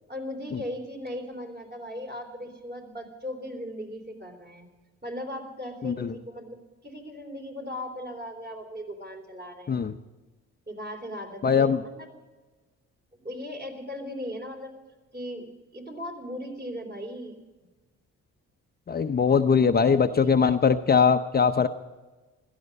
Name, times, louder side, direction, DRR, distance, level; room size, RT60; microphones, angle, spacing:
voice 1, 0.1-4.7 5.0-9.8 10.7-12.1 13.1-14.7 15.1-17.4 19.3-20.4, equal, 30° right, 2 dB, 3.8 m, -38 dB
voice 2, 5.8-6.1 9.7-9.9 11.4-11.8 18.9-21.7, left 6 dB, 30° left, 7 dB, 0.7 m, -21 dB
16.5 x 13.5 x 5.3 m, 1.2 s
cardioid pair, 90°, 30 cm